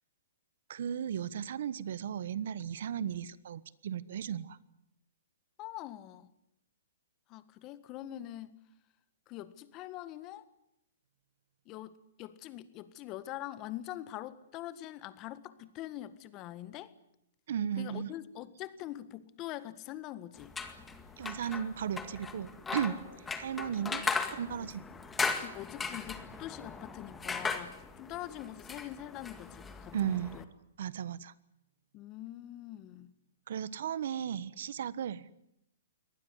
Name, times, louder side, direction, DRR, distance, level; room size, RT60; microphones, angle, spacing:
voice 1, 0.7-4.6 17.5-18.1 21.2-23.0 23.4-24.0 24.3-24.8 29.9-30.4 30.8-31.3 33.5-35.3, right 9 dB, 65° right, 18 dB, 1.3 m, -35 dB
voice 2, 5.6-6.3 7.3-8.5 9.3-10.4 11.7-16.9 17.8-20.6 25.4-30.5 31.9-33.1, left 14 dB, 30° left, 14 dB, 1.6 m, -44 dB
sound 1, 20.4-30.4, left 4 dB, 10° left, 2.0 m, -38 dB
23.0 x 19.0 x 9.8 m, 0.80 s
hypercardioid pair, 140°, 0 cm